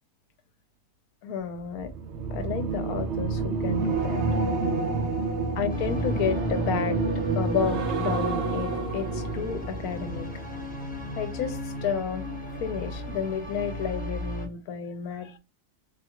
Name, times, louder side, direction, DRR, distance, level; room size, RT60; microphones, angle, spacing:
voice 1, 1.2-1.9 2.3-4.2 5.6-7.0 7.3-10.3 11.1-12.2 12.6-15.4, left 7 dB, 75° left, 1.1 m, -31 dB
sound 1, 1.7-11.1 11.4-11.8, right 3 dB, 70° right, 0.6 m, -29 dB
sound 2, 5.7-14.5, left 1 dB, 10° left, 0.4 m, -36 dB
3.7 x 2.4 x 2.8 m
omnidirectional pair, 1.7 m